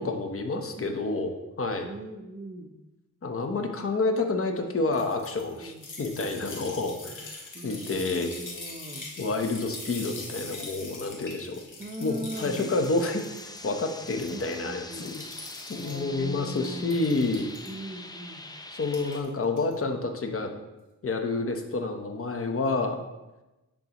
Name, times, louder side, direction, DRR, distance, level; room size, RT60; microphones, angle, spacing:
voice 1, 0.0-1.9 3.2-8.3 9.2-11.6 12.0-13.2 13.6-15.2 15.7-17.4 18.7-20.5 21.0-23.0, left 3 dB, 40° left, 5 dB, 1.0 m, -29 dB
voice 2, 1.8-2.8 5.6-5.9 7.0-7.2 7.5-9.1 11.8-12.7 14.3-15.1 15.7-17.0 17.7-18.5, right 1 dB, 25° right, 5 dB, 0.8 m, -40 dB
sound 1, 4.9-13.6 13.9-14.6 14.9-16.0 16.4-17.7 18.8-19.2 19.6-19.7, left 3 dB, 65° left, 1.9 m, -42 dB
sound 2, 12.3-19.2, left 2 dB, 10° left, 0.5 m, -43 dB
10.5 x 3.8 x 3.0 m, 1.0 s
cardioid pair, 70°, 33 cm